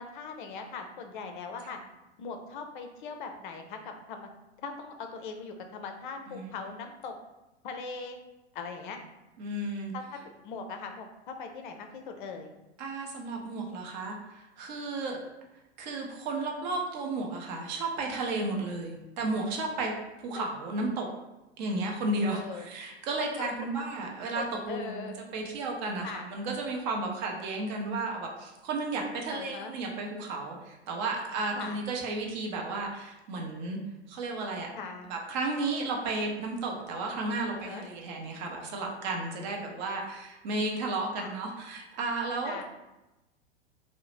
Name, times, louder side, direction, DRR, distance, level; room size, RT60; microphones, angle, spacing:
voice 1, 0.0-1.8 2.2-4.3 4.6-7.1 7.6-8.2 8.5-9.0 9.9-12.5 20.4-20.5 22.3-22.7 23.2-23.5 23.7-23.8 24.3-25.2 26.0-26.3 29.3-29.7 31.5-31.8 34.8-35.1 37.5-37.9 41.1-41.4 42.4-42.6, left 5 dB, 50° left, 5 dB, 0.5 m, -40 dB
voice 2, 9.4-9.9 12.8-15.2 15.8-21.1 21.6-33.8 34.1-34.7 35.1-42.6, right 2 dB, 40° right, 1 dB, 0.6 m, -33 dB
2.7 x 2.0 x 3.0 m, 0.99 s
figure-of-eight pair, 95°, 34 cm